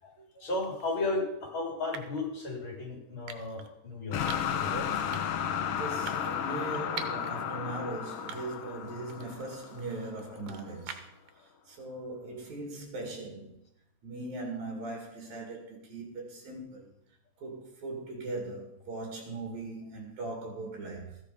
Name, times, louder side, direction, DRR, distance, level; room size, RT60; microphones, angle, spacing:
voice 1, 0.0-4.2 4.5-4.9, left 2 dB, 40° left, 4.4 m, -34 dB
sound 1, 0.6-0.9 1.9-2.3 3.3-3.7 4.3-4.6 5.1-5.5 6.1-7.3 7.8-7.9 8.3-8.8 9.1-11.3, right 8 dB, 90° right, 2.4 m, -45 dB
sound 2, 4.1-10.2, left 8 dB, 70° left, 1.5 m, -33 dB
voice 2, 5.6-11.1 11.7-13.6 14.0-16.9 17.4-21.2, right 2 dB, 70° right, 3.7 m, -39 dB
14.0 x 9.7 x 5.1 m
omnidirectional pair, 3.3 m